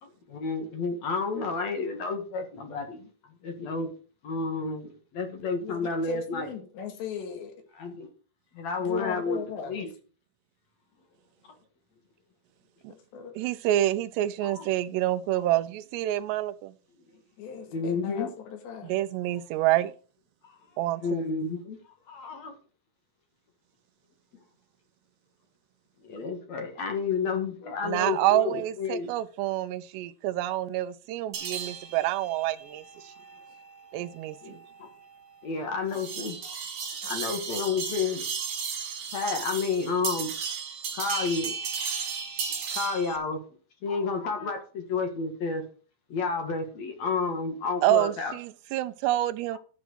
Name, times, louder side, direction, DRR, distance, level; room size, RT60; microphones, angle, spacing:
voice 1, 0.0-3.1 3.4-3.9 4.2-6.5 7.8-8.1 8.5-9.4 9.7-9.9 14.4-14.7 15.4-15.5 17.7-18.3 21.0-22.5 26.0-29.1 34.4-34.9 35.4-36.4 37.0-38.3 39.1-40.3 40.9-41.6 42.7-43.4 43.8-45.6 46.1-48.4, left 4 dB, 55° left, 2.2 m, -31 dB
voice 2, 5.6-7.7 8.8-9.8 13.1-13.4 17.4-19.0, left 7 dB, 85° left, 4.1 m, -38 dB
voice 3, 13.4-16.7 18.9-19.9 20.8-21.2 27.8-32.8 33.9-34.6 47.8-49.6, right 14 dB, 85° right, 2.8 m, -27 dB
sound 1, 31.3-43.2, right 6 dB, 55° right, 3.8 m, -35 dB
11.5 x 6.1 x 6.4 m
omnidirectional pair, 4.9 m